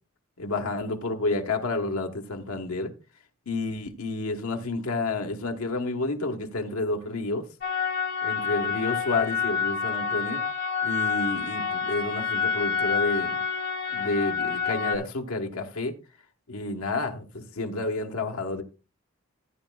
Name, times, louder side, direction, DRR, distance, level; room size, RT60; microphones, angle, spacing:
voice 1, 0.4-2.9 3.5-7.4 8.2-10.4 10.8-13.4 13.9-15.9 16.5-18.6, left 2 dB, 80° left, 1.2 m, -30 dB
sound 1, 7.6-15.0, left 6 dB, 45° left, 2.4 m, -28 dB
14.5 x 9.4 x 2.3 m
head